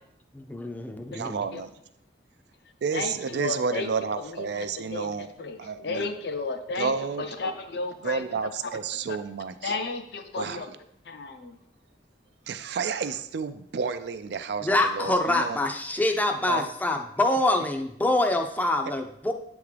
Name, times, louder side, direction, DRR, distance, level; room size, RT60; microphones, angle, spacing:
voice 1, 0.3-1.4 14.6-19.3, left 2 dB, 10° left, 4 dB, 0.5 m, -25 dB
voice 2, 1.1-1.7 2.8-5.3 5.6-6.1 6.8-7.3 8.0-9.7 10.4-10.7 12.5-15.6 16.5-16.7 18.9-19.0, right 5 dB, 70° right, 11 dB, 0.4 m, -31 dB
voice 3, 2.9-3.9 4.2-5.1 5.4-5.6 5.8-6.9 7.2-8.2 9.6-10.7 11.0-11.6, left 3 dB, 65° left, 6 dB, 0.6 m, -33 dB
8.6 x 3.6 x 3.3 m, 0.74 s
head